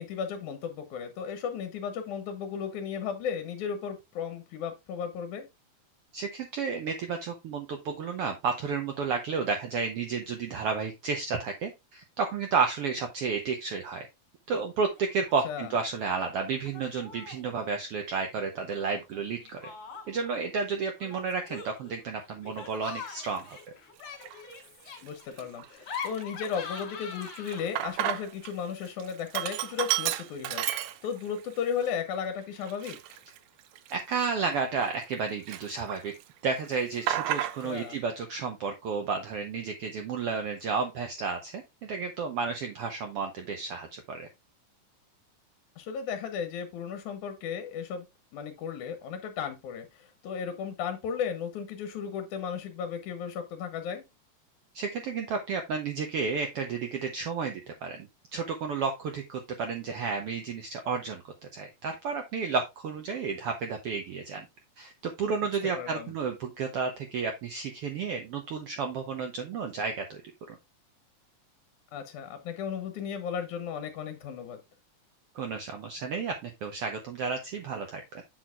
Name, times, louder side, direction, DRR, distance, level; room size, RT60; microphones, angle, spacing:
voice 1, 0.0-5.5 15.4-15.7 25.0-33.0 37.6-38.0 45.8-48.1 48.3-54.0 65.7-66.1 71.9-74.6, left 7 dB, 80° left, 2.3 m, -35 dB
voice 2, 6.1-14.1 14.5-19.7 20.1-23.6 33.9-36.1 36.4-44.3 54.7-64.5 64.8-70.2 70.5-70.6 75.3-78.2, right 5 dB, 75° right, 1.4 m, -32 dB
Laughter, 14.9-15.4 15.6-16.2 16.6-17.5 18.8-20.3 21.0-27.9, left 6 dB, 50° left, 2.6 m, -43 dB
Sink (filling or washing), 23.2-23.4 24.1-24.6 25.0-25.1 25.4-28.5 28.8-31.4 31.8-31.9 32.6-35.2 35.5-36.2 36.5-37.9, right 13 dB, 90° right, 2.1 m, -33 dB
7.9 x 6.2 x 2.3 m
omnidirectional pair, 3.6 m